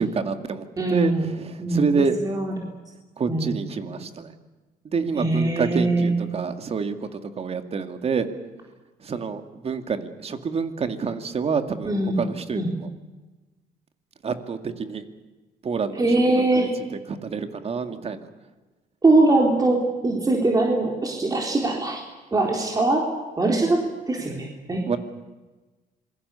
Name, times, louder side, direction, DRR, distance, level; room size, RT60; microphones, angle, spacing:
voice 1, 0.0-2.2 3.2-4.3 4.8-8.3 9.0-12.9 14.2-15.0 15.6-18.3 24.9-25.0, right 5 dB, 35° right, 8 dB, 2.2 m, -28 dB
voice 2, 0.8-1.3 1.6-2.5 3.3-3.5 5.2-6.1 11.8-12.3 12.5-12.8 15.9-16.7 19.0-22.0 22.3-23.8 24.1-24.8, right 2 dB, 20° right, 0 dB, 3.7 m, -22 dB
26.5 x 22.0 x 7.0 m, 1.2 s
cardioid pair, 110°, 17 cm